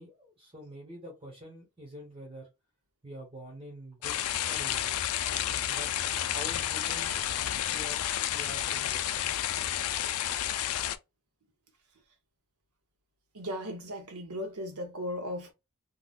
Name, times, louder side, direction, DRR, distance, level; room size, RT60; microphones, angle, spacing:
voice 1, 0.0-2.5 3.0-4.2 4.4-5.0 5.7-5.9 6.2-7.1 7.6-8.0 8.3-9.1, equal, 25° right, 1.2 m, -46 dB
sound 1, 4.0-11.0, left 11 dB, 80° left, 0.4 m, -31 dB
voice 2, 13.3-15.5, equal, 85° right, 1.0 m, -36 dB
3.8 x 2.3 x 2.4 m
head